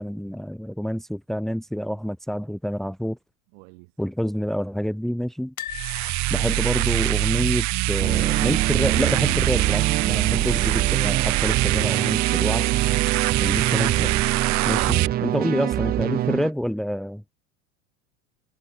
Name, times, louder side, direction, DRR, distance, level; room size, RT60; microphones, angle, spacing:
voice 1, 0.0-3.2 4.0-5.5 6.3-12.7 13.4-14.1 14.7-17.2, equal, ahead, 2.0 m, -27 dB
voice 2, 3.5-3.9, right 32 dB, 55° right, 6.8 m, -49 dB
sound 1, 5.6-8.6 8.9-9.1 9.3-9.4 10.7-11.2 11.7-11.8, left 11 dB, 75° left, 4.5 m, -41 dB
sound 2, 5.7-15.1, right 20 dB, 40° right, 1.1 m, -23 dB
sound 3, 8.0-16.5, right 13 dB, 25° right, 0.5 m, -26 dB
figure-of-eight pair, 85°, 43 cm